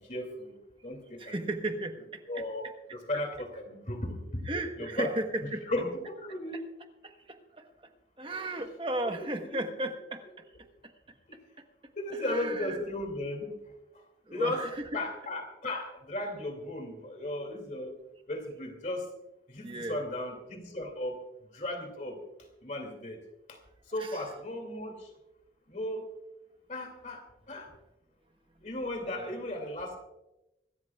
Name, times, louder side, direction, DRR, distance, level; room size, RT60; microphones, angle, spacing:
voice 1, 0.1-0.5 0.8-1.4 2.3-4.4 4.8-5.1 5.4-6.6 9.2-9.6 11.3-11.4 12.0-13.5 14.3-14.6 14.9-17.9 18.3-19.1 19.5-21.2 21.5-22.2 22.6-23.2 23.5-23.6 23.9-25.1 25.7-26.0 26.7-27.7 28.6-30.0, left 1 dB, 40° left, 3 dB, 2.6 m, -36 dB
voice 2, 1.2-2.4 4.4-5.7 7.0-7.7 8.2-10.4 10.8-10.9 12.2-12.8 14.3-15.0 19.6-20.0 24.0-24.2 29.1-29.3, right 1 dB, 30° right, 6 dB, 1.2 m, -35 dB
25.5 x 13.5 x 2.4 m, 0.95 s
head